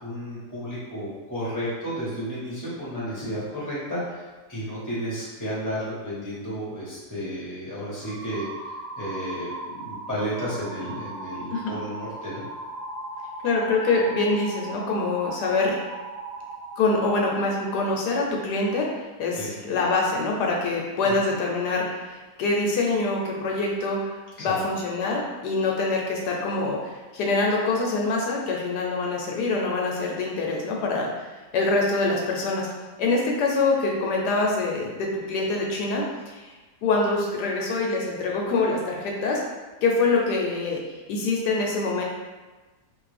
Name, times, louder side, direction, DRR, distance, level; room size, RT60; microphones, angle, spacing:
voice 1, 0.0-8.5 9.0-12.5 19.3-19.5 21.0-21.1 24.4-24.6, equal, 15° left, -9 dB, 1.0 m, -32 dB
sound 1, 8.0-17.3, right 2 dB, 10° right, 0.6 m, -38 dB
voice 2, 13.4-15.8 16.8-18.9 19.2-32.7 33.0-36.5 36.8-39.4 39.8-40.8 41.1-42.0, left 3 dB, 80° left, -1 dB, 1.2 m, -25 dB
2.8 x 2.5 x 3.2 m, 1.3 s
omnidirectional pair, 1.8 m